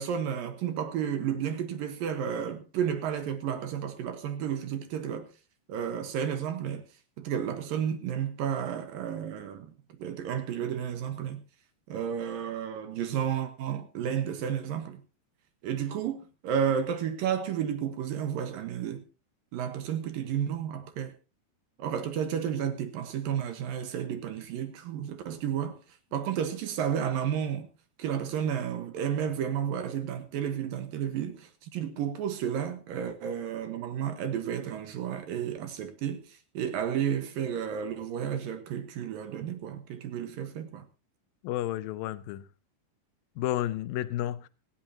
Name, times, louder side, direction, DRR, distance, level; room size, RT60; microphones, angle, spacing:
voice 1, 0.0-5.3 5.7-6.9 7.2-9.7 10.0-11.4 11.9-15.0 15.6-19.1 19.5-21.1 21.8-25.8 26.1-27.7 28.0-40.9, right 8 dB, 65° right, 2.5 m, -32 dB
voice 2, 41.4-42.4 43.4-44.5, left 13 dB, 80° left, 2.0 m, -31 dB
18.0 x 16.0 x 2.8 m
omnidirectional pair, 5.1 m